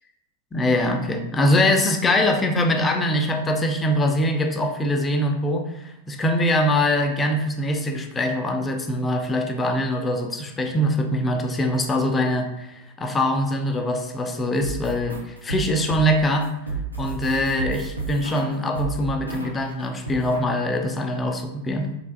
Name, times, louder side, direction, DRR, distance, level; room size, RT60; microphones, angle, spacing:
voice 1, 0.5-16.5 17.0-21.9, left 1 dB, 15° left, 3 dB, 0.5 m, -23 dB
sound 1, 14.6-19.7 20.1-20.5, right 3 dB, 85° right, 0.7 m, -32 dB
4.4 x 3.4 x 2.5 m, 0.86 s
figure-of-eight pair, 90°, 0 cm